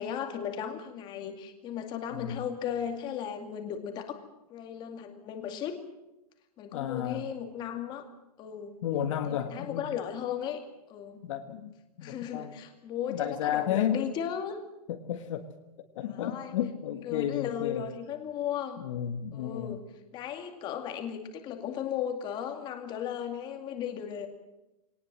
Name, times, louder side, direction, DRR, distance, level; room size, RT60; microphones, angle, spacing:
voice 1, 0.0-4.2 4.5-5.8 6.6-8.1 8.4-8.8 9.3-10.6 10.9-11.2 12.0-14.6 16.1-16.5 17.0-18.8 19.3-19.8 20.1-24.3, left 9 dB, 20° left, 6 dB, 2.3 m, -36 dB
voice 2, 2.1-2.4 6.7-7.2 8.8-9.8 11.2-11.7 12.0-12.6 13.1-14.0 14.9-15.4 15.9-17.9 18.8-19.8, left 10 dB, 50° left, 6 dB, 1.7 m, -32 dB
22.0 x 19.0 x 7.5 m, 0.94 s
supercardioid pair, 170°, 21 cm